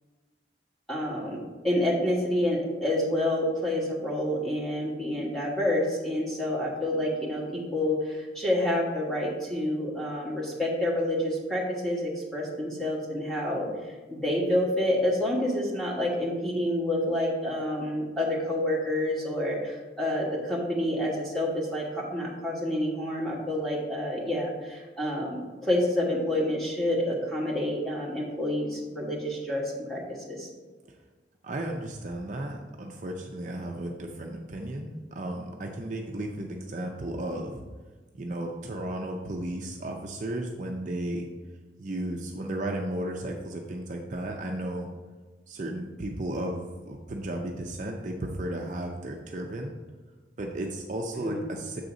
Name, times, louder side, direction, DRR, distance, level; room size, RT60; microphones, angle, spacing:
voice 1, 0.9-1.4 1.6-13.7 14.1-30.0 30.3-30.5 51.2-51.4, left 1 dB, ahead, -4 dB, 1.3 m, -28 dB
voice 2, 31.4-37.6 38.1-41.3 41.8-44.9 45.5-49.7 50.4-51.8, right 1 dB, 40° right, 1 dB, 0.5 m, -34 dB
7.0 x 3.9 x 4.9 m, 1.3 s
head